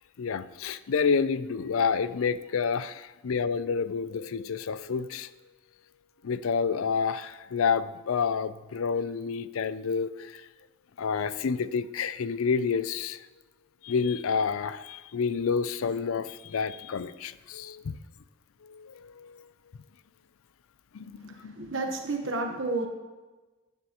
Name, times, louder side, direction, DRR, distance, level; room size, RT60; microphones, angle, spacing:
voice 1, 0.2-5.3 6.2-10.3 11.0-13.2 13.8-18.0 18.6-19.3 20.9-21.5, left 5 dB, 80° left, 14 dB, 0.5 m, -29 dB
voice 2, 21.3-22.9, right 3 dB, 65° right, 2 dB, 1.1 m, -31 dB
14.0 x 9.5 x 3.0 m, 1.2 s
head